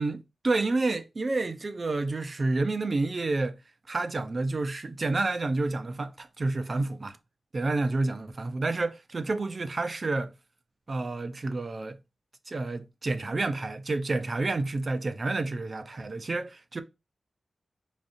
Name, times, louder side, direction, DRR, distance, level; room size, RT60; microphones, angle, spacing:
voice 1, 0.0-3.6 3.9-7.2 7.5-10.3 10.9-12.0 12.5-16.8, right 3 dB, 45° right, 0.5 m, -29 dB
5.1 x 2.5 x 2.5 m
wide cardioid pair, 75°, 0 cm